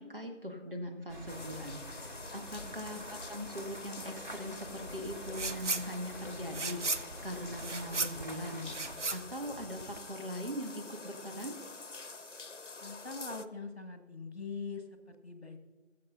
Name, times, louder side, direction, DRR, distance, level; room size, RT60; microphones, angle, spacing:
voice 1, 0.0-11.6, equal, 50° right, 3 dB, 1.5 m, -41 dB
sound 1, 1.1-9.0, equal, 40° left, 1.0 m, -47 dB
sound 2, 1.3-13.5, left 4 dB, 90° left, 0.7 m, -47 dB
sound 3, 5.3-5.9 6.2-10.1, right 3 dB, 80° right, 0.8 m, -36 dB
voice 2, 12.8-15.6, left 4 dB, 60° left, 5 dB, 1.6 m, -43 dB
19.5 x 7.7 x 2.5 m, 1.3 s
figure-of-eight pair, 180°, 35 cm